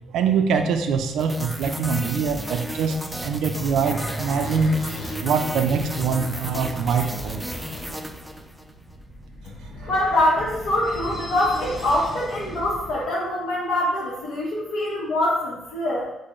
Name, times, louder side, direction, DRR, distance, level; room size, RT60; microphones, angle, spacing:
voice 1, 0.1-3.0 3.2-4.8 5.2-7.4, right 5 dB, 80° right, 6 dB, 0.3 m, -23 dB
sound 1, 1.2-8.7, equal, 5° right, 0.4 m, -34 dB
sound 2, 2.6-13.0, right 1 dB, 65° left, 1.3 m, -36 dB
voice 2, 9.9-16.1, left 1 dB, 85° left, -7 dB, 0.8 m, -24 dB
5.1 x 2.0 x 2.9 m, 0.97 s
cardioid pair, 90°, 0 cm